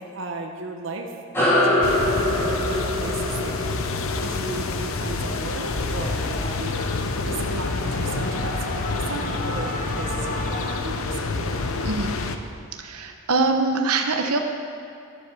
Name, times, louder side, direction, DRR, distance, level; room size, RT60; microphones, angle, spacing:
voice 1, 0.0-12.0, right 2 dB, 60° right, 2 dB, 0.9 m, -35 dB
sound 1, 1.3-6.2, left 1 dB, 10° left, 2.8 m, -25 dB
sound 2, 1.8-12.4, left 3 dB, 70° left, 0.7 m, -28 dB
sound 3, 4.4-10.8, left 1 dB, 35° left, 1.0 m, -36 dB
voice 2, 12.8-14.4, right 3 dB, 90° right, 4 dB, 1.0 m, -23 dB
12.0 x 8.0 x 7.0 m, 2.5 s
head